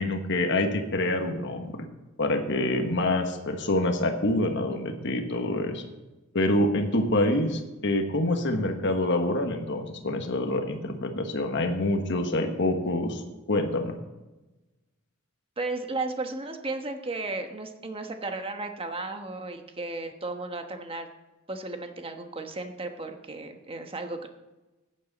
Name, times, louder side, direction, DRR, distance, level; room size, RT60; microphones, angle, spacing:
voice 1, 0.0-1.7 2.2-5.8 6.3-13.2 13.5-14.0, left 1 dB, 60° left, 5 dB, 1.3 m, -26 dB
voice 2, 15.6-21.1 21.5-24.3, right 2 dB, 25° right, 5 dB, 1.1 m, -34 dB
15.0 x 9.8 x 4.0 m, 1.1 s
head